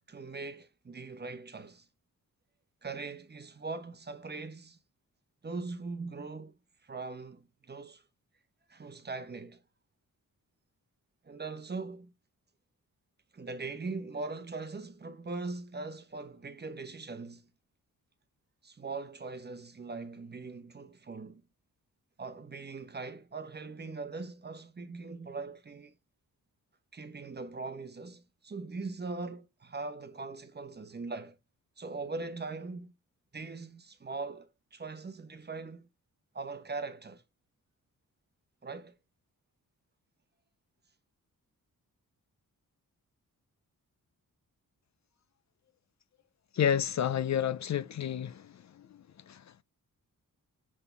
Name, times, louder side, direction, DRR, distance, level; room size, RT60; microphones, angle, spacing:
voice 1, 0.0-1.8 2.8-4.8 5.4-6.5 6.8-8.0 8.7-9.6 11.2-12.1 13.3-17.5 18.6-21.4 22.2-25.9 26.9-31.4 31.8-32.9 33.3-35.9 36.3-37.2 38.6-38.9, right 3 dB, 30° right, 0.9 m, -41 dB
voice 2, 46.5-48.5 49.3-49.6, left 9 dB, 55° left, 0.5 m, -30 dB
7.3 x 4.1 x 3.3 m
wide cardioid pair, 130°, 35 cm